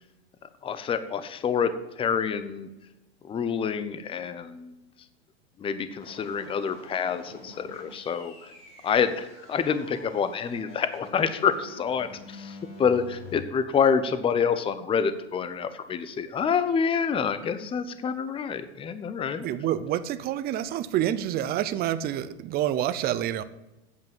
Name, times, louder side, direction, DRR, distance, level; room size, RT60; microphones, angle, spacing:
voice 1, 0.6-2.7 3.2-4.7 5.6-8.5 8.8-19.5, left 6 dB, 15° left, 11 dB, 0.7 m, -27 dB
sound 1, 6.0-13.4, left 1 dB, 35° left, 4.5 m, -47 dB
voice 2, 19.4-23.4, right 11 dB, 30° right, 13 dB, 0.6 m, -28 dB
8.4 x 7.4 x 7.2 m, 0.99 s
hypercardioid pair, 120°, 33 cm